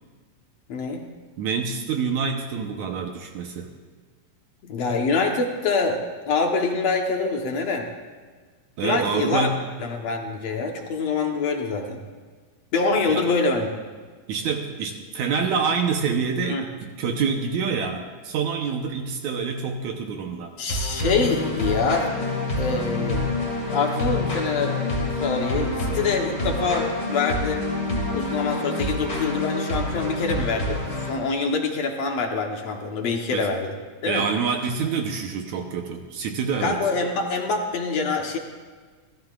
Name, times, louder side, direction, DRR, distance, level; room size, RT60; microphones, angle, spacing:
voice 1, 0.7-1.0 4.6-7.9 8.8-9.5 9.8-12.0 12.7-13.7 16.4-16.6 20.6-22.1 22.5-23.3 23.7-27.6 28.1-33.7 34.0-34.2 36.6-38.4, left 4 dB, 60° left, 2 dB, 2.0 m, -25 dB
voice 2, 1.4-3.7 8.8-9.6 13.1-13.2 14.3-20.5 33.3-33.5 34.0-36.8, right 5 dB, 70° right, 3 dB, 2.1 m, -27 dB
sound 1, 20.7-31.1, left 2 dB, 20° left, 2.6 m, -27 dB
28.5 x 13.0 x 2.5 m, 1.5 s
omnidirectional pair, 3.9 m